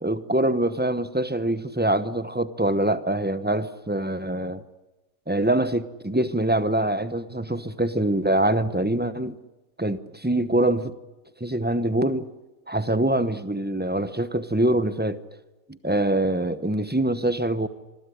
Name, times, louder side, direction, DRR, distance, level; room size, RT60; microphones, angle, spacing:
voice 1, 0.0-4.6 5.3-9.3 9.8-10.9 11.4-12.3 12.7-15.2 15.7-17.7, right 1 dB, 10° right, 0.7 m, -24 dB
26.0 x 20.5 x 10.0 m
omnidirectional pair, 1.5 m